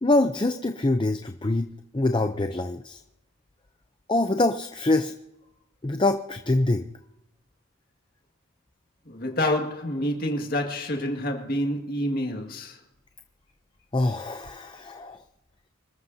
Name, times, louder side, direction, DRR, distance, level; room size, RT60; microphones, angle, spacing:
voice 1, 0.0-3.0 4.1-5.1 5.8-6.9 13.9-15.2, left 2 dB, 20° left, 0.5 m, -24 dB
voice 2, 9.1-12.8, left 1 dB, 40° left, 2.0 m, -28 dB
26.0 x 13.5 x 2.8 m
head